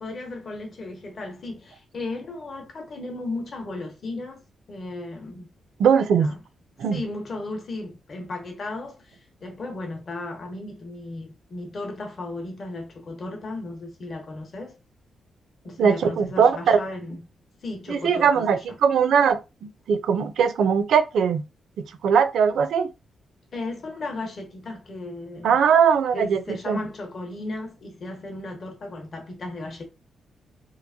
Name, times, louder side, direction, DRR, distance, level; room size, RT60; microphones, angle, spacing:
voice 1, 0.0-4.4 4.7-5.5 6.1-6.4 6.9-14.8 15.6-17.2 17.6-18.8 23.5-25.6 26.1-29.8, left 2 dB, 45° left, 0.9 m, -35 dB
voice 2, 5.8-6.3 6.8-7.0 15.8-16.8 17.9-21.4 21.8-22.9 25.4-26.4 26.7-26.8, right 7 dB, 80° right, 0.5 m, -20 dB
2.9 x 2.4 x 2.6 m
cardioid pair, 125°, 0 cm